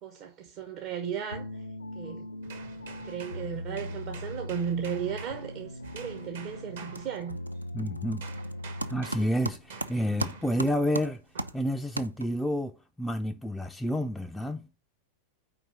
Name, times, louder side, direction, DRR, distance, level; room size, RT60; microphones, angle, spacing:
voice 1, 0.0-1.6 2.0-2.3 3.0-7.4, right 8 dB, 40° right, 0.7 m, -35 dB
sound 1, 1.3-9.4, left 1 dB, 80° left, 0.3 m, -40 dB
sound 2, 2.4-7.7 8.2-10.7 11.4-11.6, right 5 dB, 65° right, 1.2 m, -47 dB
sound 3, 6.1-6.5 6.7-12.6, right 2 dB, 85° right, 0.4 m, -38 dB
voice 2, 7.7-8.3 8.9-11.2 11.5-12.7 13.0-14.7, equal, 5° left, 0.3 m, -29 dB
4.6 x 3.9 x 5.6 m
figure-of-eight pair, 90°, 0 cm